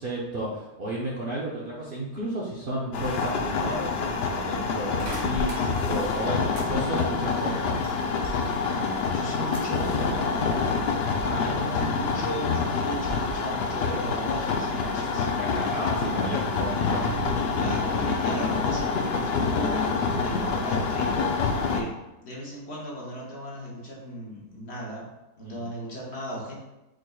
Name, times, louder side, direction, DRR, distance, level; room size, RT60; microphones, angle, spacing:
voice 1, 0.0-7.8 11.2-11.8 15.2-17.1 21.7-21.9 25.4-25.7, right 1 dB, 50° right, -6 dB, 0.7 m, -33 dB
sound 1, 2.9-21.8, left 4 dB, 75° left, 0.5 m, -27 dB
sound 2, 5.0-6.7 7.0-8.7 9.0-9.8 10.3-10.8, right 2 dB, 80° right, 1.5 m, -41 dB
voice 2, 8.5-10.8 11.4-15.3 17.5-21.9 22.2-25.1 25.4-26.6, equal, 50° left, -4 dB, 1.1 m, -36 dB
sound 3, 16.7-20.5 21.7-21.8, right 2 dB, 15° left, 1.1 m, -40 dB
4.9 x 4.5 x 2.3 m, 0.97 s
omnidirectional pair, 1.6 m